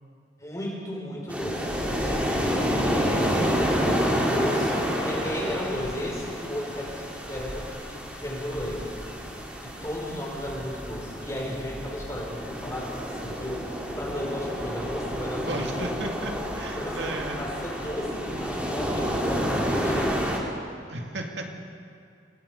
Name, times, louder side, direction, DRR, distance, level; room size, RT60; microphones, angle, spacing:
voice 1, 0.4-3.4 4.2-8.9 9.6-16.1 16.8-20.1, left 1 dB, 20° left, -2 dB, 5.6 m, -34 dB
sound 1, 1.3-20.4, equal, 10° right, 3.5 m, -29 dB
voice 2, 15.5-17.4 20.9-21.5, right 2 dB, 75° right, 1 dB, 2.4 m, -34 dB
28.5 x 19.5 x 5.4 m, 2.4 s
head